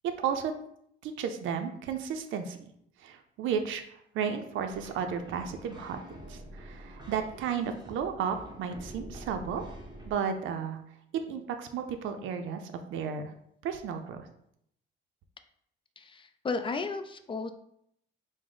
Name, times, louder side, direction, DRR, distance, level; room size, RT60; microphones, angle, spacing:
voice 1, 1.0-2.7 3.0-6.0 6.3-9.7 10.1-10.8 11.3-13.3 13.6-14.3, right 7 dB, 85° right, 7 dB, 0.5 m, -33 dB
sound 1, 4.7-10.2, right 1 dB, 20° right, 0.9 m, -46 dB
voice 2, 16.0-17.5, left 4 dB, 25° left, 9 dB, 0.4 m, -34 dB
4.9 x 2.1 x 3.8 m, 0.72 s
cardioid pair, 90°, 20 cm